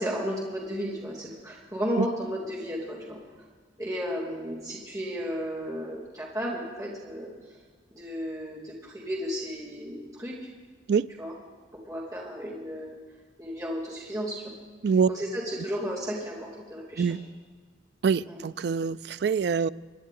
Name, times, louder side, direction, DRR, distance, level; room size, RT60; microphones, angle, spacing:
voice 1, 0.0-3.2 3.8-7.3 8.0-10.3 11.2-11.3 11.9-12.9 13.4-14.4 15.1-17.1 18.3-18.4, equal, 20° right, -7 dB, 2.8 m, -33 dB
voice 2, 18.0-19.7, right 6 dB, 60° right, 16 dB, 0.3 m, -25 dB
24.5 x 10.5 x 3.8 m, 1.6 s
head